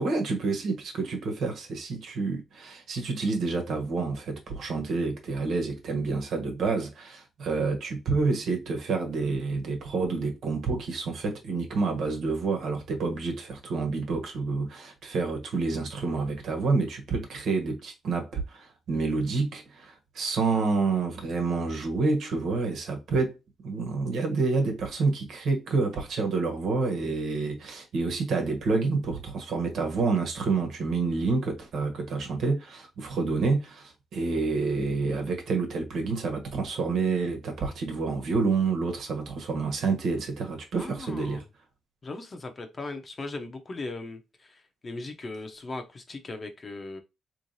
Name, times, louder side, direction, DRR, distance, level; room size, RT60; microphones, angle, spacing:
voice 1, 0.0-23.4 23.6-41.4, right 4 dB, 70° right, 1.3 m, -28 dB
voice 2, 40.7-41.4 42.0-47.0, left 2 dB, 35° left, 0.9 m, -38 dB
3.3 x 3.2 x 2.6 m
cardioid pair, 90°, 0 cm